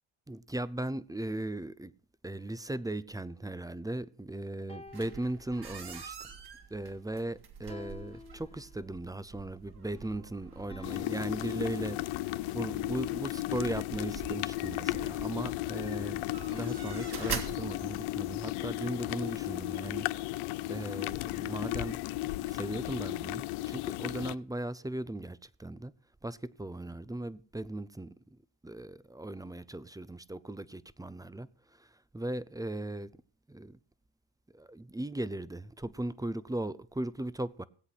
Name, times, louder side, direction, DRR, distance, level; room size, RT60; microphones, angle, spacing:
voice 1, 0.3-1.9 2.2-6.3 6.7-12.0 12.5-16.2 16.5-20.4 20.7-25.9 26.2-33.1 33.5-33.8 34.5-37.6, right 1 dB, 10° right, 0.6 m, -38 dB
sound 1, 2.4-4.1 4.7-6.1 7.7-9.1 10.7-12.2, left 3 dB, 10° left, 1.6 m, -53 dB
sound 2, 4.9-18.5, right 6 dB, 55° right, 2.8 m, -45 dB
sound 3, 10.8-24.3, left 18 dB, 90° left, 0.6 m, -35 dB
18.0 x 8.1 x 5.8 m
cardioid pair, 90°, 48 cm